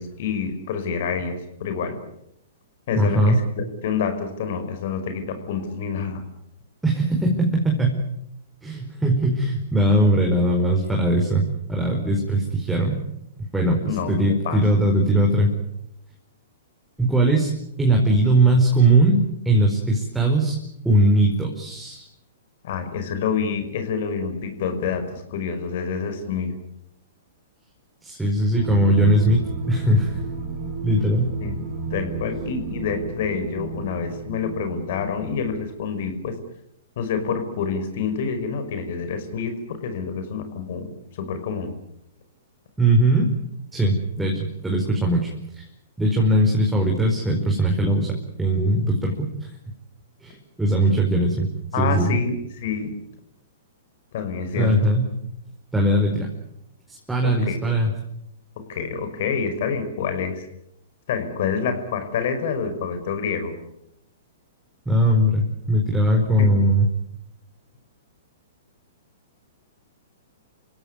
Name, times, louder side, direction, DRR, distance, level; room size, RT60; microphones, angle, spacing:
voice 1, 0.0-2.0 2.9-6.2 13.9-14.1 14.4-14.6 22.6-26.5 31.4-31.6 31.9-36.4 37.0-41.7 51.7-52.4 52.6-53.0 54.1-54.8 57.2-57.6 58.6-60.5 61.1-63.6 66.4-66.5, left 6 dB, 55° left, 8 dB, 5.4 m, -27 dB
voice 2, 3.0-3.4 6.8-8.0 8.6-11.4 11.7-13.0 13.5-15.5 17.0-17.5 17.8-19.2 19.4-20.5 20.8-22.0 28.0-30.2 30.8-31.3 42.8-43.3 43.7-45.6 46.0-49.3 50.2-51.5 51.8-52.2 54.6-55.1 55.7-56.3 56.9-57.9 64.8-66.9, right 1 dB, 5° right, 0 dB, 4.9 m, -20 dB
sound 1, 28.5-35.6, right 4 dB, 30° right, 6.7 m, -33 dB
28.5 x 17.0 x 9.7 m, 0.81 s
hypercardioid pair, 115°, 0 cm